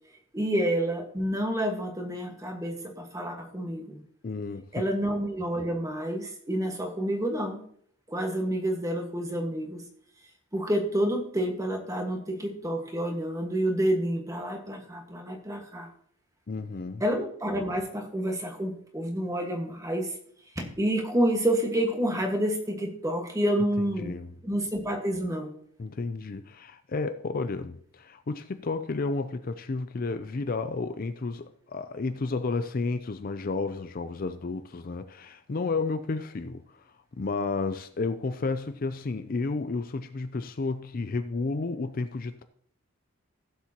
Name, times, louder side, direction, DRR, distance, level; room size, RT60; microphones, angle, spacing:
voice 1, 0.3-4.0 4.7-7.6 8.1-9.8 10.5-15.9 17.0-20.1 20.5-24.1 24.4-25.5, right 1 dB, 15° right, 1.6 m, -29 dB
voice 2, 4.2-4.9 16.5-17.0 24.0-24.3 25.8-36.8 37.2-42.4, left 3 dB, 40° left, 0.4 m, -32 dB
16.0 x 7.3 x 2.9 m
head